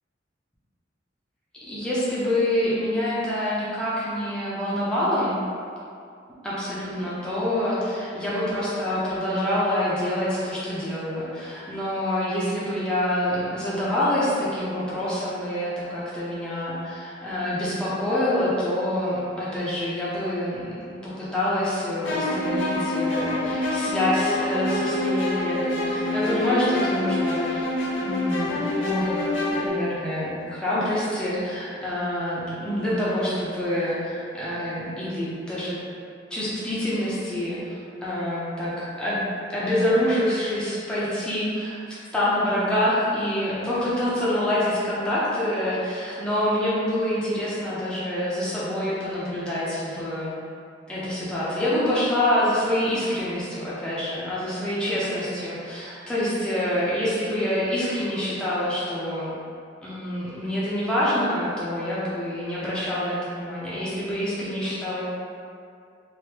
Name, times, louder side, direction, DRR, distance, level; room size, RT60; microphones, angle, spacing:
voice 1, 1.6-5.4 6.4-20.8 21.0-27.7 28.0-35.8 36.3-39.2 39.5-41.8 42.1-50.3 50.9-59.3 59.8-65.0, left 1 dB, 5° left, -10 dB, 0.6 m, -26 dB
sound 1, 22.0-29.7, left 1 dB, 90° left, 0.6 m, -26 dB
3.2 x 2.5 x 2.8 m, 2.4 s
head